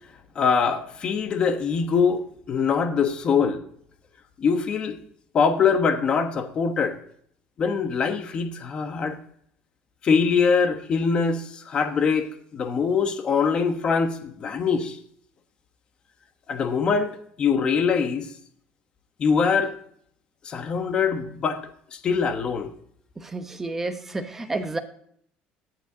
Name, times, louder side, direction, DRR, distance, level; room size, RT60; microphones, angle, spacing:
voice 1, 0.3-2.2 2.5-3.6 4.4-5.0 5.3-7.0 7.6-9.2 10.0-15.0 16.5-18.3 19.2-19.7 20.4-21.6 21.9-22.7, left 5 dB, 30° left, 1.1 m, -23 dB
voice 2, 23.2-24.8, right 2 dB, 10° right, 0.9 m, -30 dB
20.0 x 7.2 x 2.8 m
cardioid pair, 160°, 3 cm